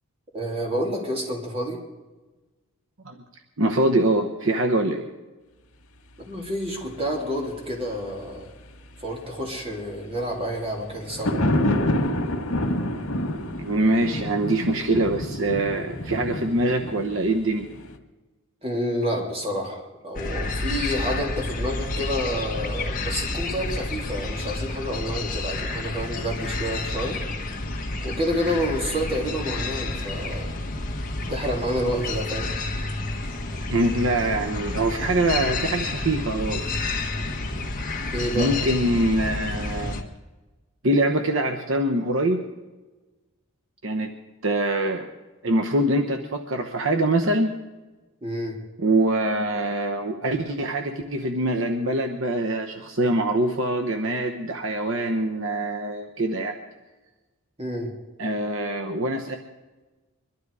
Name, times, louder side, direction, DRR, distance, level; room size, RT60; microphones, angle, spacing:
voice 1, 0.3-1.8 6.3-8.5 9.0-11.3 18.6-27.2 28.0-30.5 31.3-32.5 38.1-38.6 48.2-48.6 57.6-57.9, equal, 25° right, -1 dB, 3.3 m, -29 dB
voice 2, 3.6-5.1 13.6-17.7 33.7-36.6 38.4-40.0 40.8-42.4 43.8-44.1 44.4-45.1 45.4-47.6 48.8-56.6 58.2-59.4, right 1 dB, 60° right, 4 dB, 1.0 m, -24 dB
sound 1, 10.9-18.0, left 1 dB, 80° left, 1.7 m, -27 dB
sound 2, 20.1-40.0, left 2 dB, 35° left, 1.5 m, -30 dB
22.5 x 12.0 x 4.9 m, 1.2 s
head